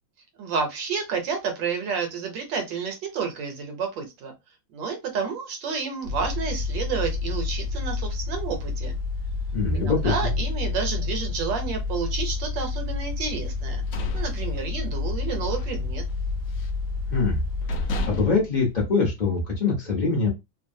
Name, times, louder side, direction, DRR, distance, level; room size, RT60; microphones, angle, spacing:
voice 1, 0.4-4.3 4.7-9.0 9.7-13.8 14.1-16.0, right 5 dB, 75° right, 5 dB, 1.4 m, -30 dB
sound 1, 6.0-18.1, left 4 dB, 55° right, 0.8 m, -29 dB
voice 2, 9.5-10.3 17.1-17.4 18.1-20.3, left 4 dB, 35° left, -2 dB, 0.7 m, -23 dB
sound 2, 13.6-15.1 15.5-15.8 16.1-16.9 17.3-17.4 17.7-19.5, left 1 dB, 80° left, 0.7 m, -33 dB
3.2 x 2.2 x 2.6 m, 0.22 s
omnidirectional pair, 2.1 m